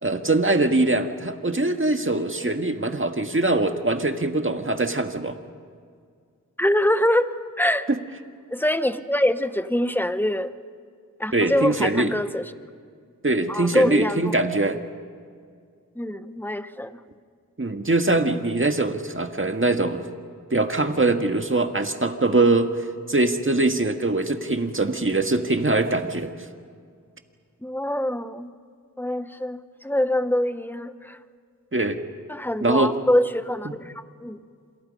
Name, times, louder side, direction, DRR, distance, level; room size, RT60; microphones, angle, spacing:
voice 1, 0.0-5.4 7.9-8.0 11.3-12.1 13.2-14.8 17.6-20.0 20.5-22.7 23.1-26.3 31.7-32.0 32.6-32.9, right 2 dB, 40° right, 6 dB, 1.8 m, -22 dB
voice 2, 6.6-7.9 8.5-10.5 11.2-12.4 13.5-14.3 16.0-17.0 27.6-28.5 29.0-31.2 32.3-33.9 34.2-34.4, left 1 dB, 5° left, 11 dB, 1.1 m, -24 dB
27.5 x 27.5 x 5.5 m, 2.1 s
wide cardioid pair, 50°, 32 cm